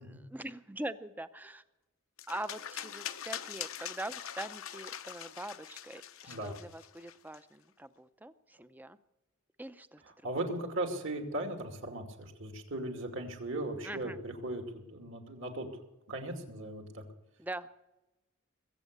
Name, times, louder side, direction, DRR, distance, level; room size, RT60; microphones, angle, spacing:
voice 1, 0.1-1.6 2.3-9.0 9.6-10.0 13.8-14.2 17.4-17.7, right 1 dB, 10° right, 12 dB, 0.6 m, -43 dB
sound 1, 2.2-7.4, left 10 dB, 75° left, 0.7 m, -43 dB
voice 2, 10.0-15.7 16.1-17.0, right 1 dB, 65° right, 4 dB, 2.5 m, -38 dB
21.5 x 8.3 x 6.7 m, 0.98 s
head